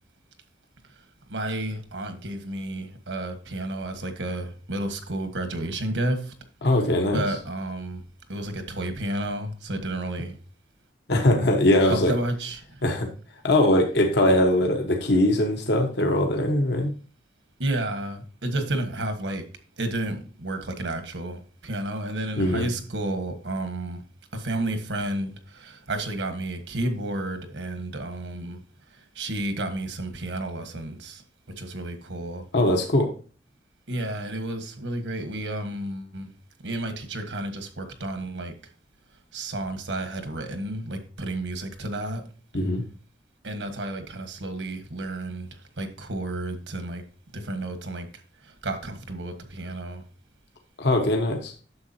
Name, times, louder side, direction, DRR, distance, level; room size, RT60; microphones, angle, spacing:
voice 1, 1.3-6.3 6.7-6.8 7.1-8.0 8.3-10.4 11.9-12.8 17.6-19.4 19.8-24.0 24.3-28.6 28.9-31.2 31.6-32.5 33.9-36.3 36.6-38.5 39.3-42.2 43.4-47.0 47.3-48.1 48.4-50.0, right 1 dB, 85° right, 1.5 m, -31 dB
voice 2, 6.6-7.2 11.1-12.1 12.8-13.1 13.4-16.9 22.4-22.7 32.5-33.1 42.5-42.8 50.8-51.5, left 1 dB, 65° left, 1.2 m, -21 dB
9.5 x 7.1 x 2.8 m
head